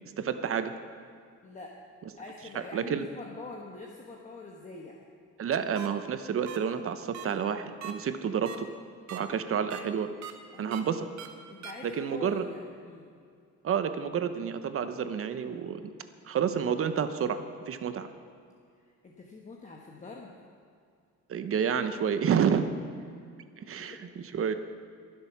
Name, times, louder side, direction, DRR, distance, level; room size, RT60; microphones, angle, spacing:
voice 1, 0.2-0.7 2.7-3.1 5.4-8.7 9.1-10.1 10.6-11.1 11.8-12.4 13.6-15.9 16.2-18.1 21.3-22.7 23.6-24.5, right 7 dB, 45° right, 10 dB, 0.9 m, -29 dB
voice 2, 1.4-1.8 2.2-5.0 10.5-10.9 11.5-13.1 18.8-20.3 23.8-24.0, left 3 dB, 25° left, -1 dB, 1.3 m, -45 dB
sound 1, 5.8-5.9 6.5-6.6 7.1-7.3 7.8-7.9 8.5-8.6 9.1-9.2 9.7-9.8 10.2-10.3 10.7-10.8 11.2-11.3 11.6-11.7, right 8 dB, 60° right, 1.3 m, -40 dB
22.5 x 7.7 x 6.0 m, 2.3 s
cardioid pair, 150°, 31 cm